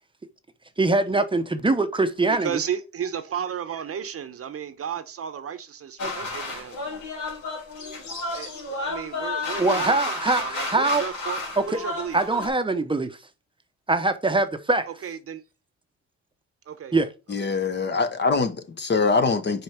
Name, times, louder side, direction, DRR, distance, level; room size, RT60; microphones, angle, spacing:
voice 1, 0.8-2.6 9.6-11.1 11.6-11.8 12.1-13.2 13.9-14.9 16.9-17.1, right 2 dB, 15° right, 0.8 m, -23 dB
voice 2, 2.4-6.8 8.3-8.5 8.8-10.0 10.4-11.4 11.7-12.2 15.0-15.4 16.7-16.9, right 8 dB, 50° right, 0.9 m, -33 dB
sound 1, 6.0-12.5, left 3 dB, 75° left, 3.2 m, -32 dB
voice 3, 17.3-19.6, left 4 dB, 35° left, 1.0 m, -23 dB
5.3 x 4.6 x 4.4 m
cardioid pair, 90°, 30 cm